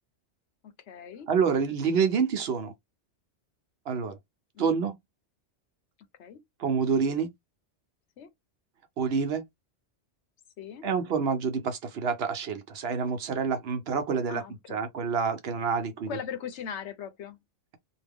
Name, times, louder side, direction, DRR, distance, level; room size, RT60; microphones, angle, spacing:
voice 1, 0.6-1.3 4.5-4.7 6.2-6.4 8.2-8.3 10.6-10.9 14.3-14.9 16.1-17.4, left 7 dB, 75° left, 1.0 m, -39 dB
voice 2, 1.3-2.7 3.9-4.2 4.6-4.9 6.6-7.3 9.0-9.4 10.8-14.4 14.7-16.1, right 6 dB, 65° right, 0.9 m, -27 dB
2.7 x 2.2 x 3.5 m
omnidirectional pair, 1.2 m